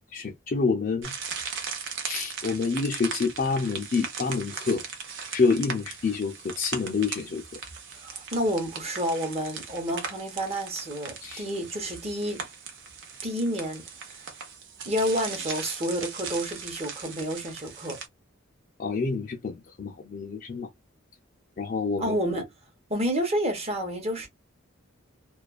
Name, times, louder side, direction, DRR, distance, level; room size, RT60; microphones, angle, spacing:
voice 1, 0.1-1.1 2.0-4.8 5.3-7.4 11.2-11.4 18.8-20.7 21.6-22.1, left 4 dB, 45° left, 0.4 m, -27 dB
sound 1, 1.0-18.1, right 6 dB, 60° right, 0.7 m, -38 dB
voice 2, 8.0-12.5 13.2-14.1 14.9-18.0 22.0-22.4 22.9-24.3, equal, 30° right, 0.9 m, -29 dB
2.4 x 2.2 x 2.3 m
head